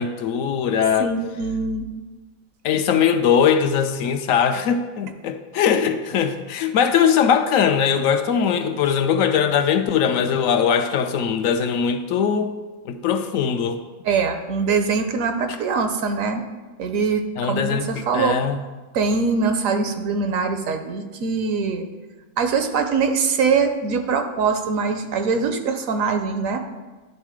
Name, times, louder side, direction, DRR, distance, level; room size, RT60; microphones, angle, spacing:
voice 1, 0.0-1.1 2.6-12.6 12.9-13.8 17.4-18.6, left 7 dB, 70° left, 8 dB, 0.9 m, -20 dB
voice 2, 1.0-1.9 14.0-16.4 16.8-18.4 18.9-21.9 22.4-26.6, right 5 dB, 70° right, 6 dB, 1.0 m, -23 dB
11.0 x 3.6 x 4.8 m, 1.2 s
omnidirectional pair, 1.5 m